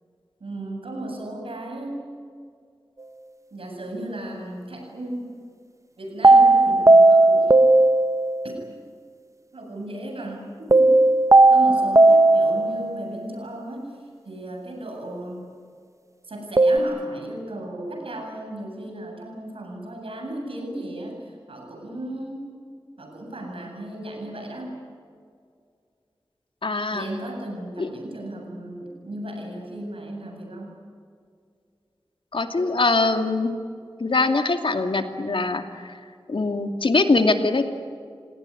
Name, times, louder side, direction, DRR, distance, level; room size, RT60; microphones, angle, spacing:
voice 1, 0.4-2.0 3.5-5.3 6.0-7.6 9.5-10.9 11.5-14.0 14.2-15.5 16.3-22.5 23.0-24.7 26.9-30.8, right 1 dB, 90° right, 1 dB, 7.9 m, -35 dB
sound 1, 6.2-8.5 10.7-13.0 16.6-16.8, right 2 dB, 35° right, 1.1 m, -15 dB
voice 2, 26.6-27.1 27.8-27.9 32.3-33.5 34.0-36.0 36.3-37.7, left 3 dB, 70° left, 6 dB, 2.5 m, -22 dB
29.5 x 18.0 x 9.9 m, 2.3 s
wide cardioid pair, 60°, 9 cm